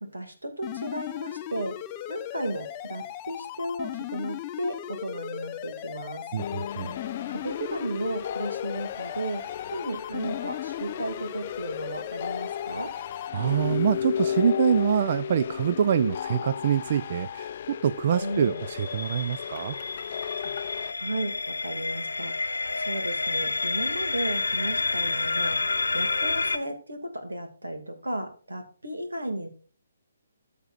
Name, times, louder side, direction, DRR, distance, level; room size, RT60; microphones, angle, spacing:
voice 1, 0.0-1.8 2.1-6.2 7.3-9.4 9.7-12.9 16.0-16.1 18.2-18.6 20.4-20.5 20.9-25.6 25.9-29.5, right 1 dB, 90° right, 2.3 m, -34 dB
sound 1, 0.6-13.3, left 12 dB, 25° left, 0.7 m, -37 dB
voice 2, 6.3-7.0 13.3-19.8, right 8 dB, 45° right, 0.4 m, -25 dB
sound 2, 6.4-20.9, left 8 dB, 50° left, 0.3 m, -34 dB
sound 3, 18.4-26.6, left 3 dB, 80° left, 0.9 m, -29 dB
14.0 x 6.7 x 2.5 m
figure-of-eight pair, 145°, 0 cm